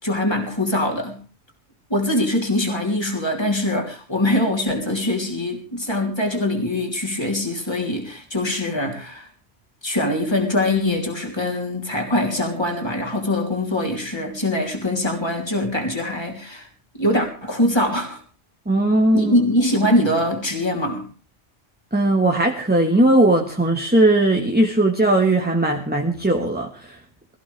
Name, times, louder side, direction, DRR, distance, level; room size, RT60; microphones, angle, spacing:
voice 1, 0.0-1.2 1.9-9.3 9.8-16.7 16.9-18.2 19.1-21.1, left 1 dB, 25° left, 1 dB, 3.4 m, -23 dB
voice 2, 18.6-19.3 21.9-27.0, right 1 dB, 10° right, 2 dB, 1.5 m, -18 dB
23.0 x 15.0 x 3.4 m, 0.36 s
omnidirectional pair, 1.1 m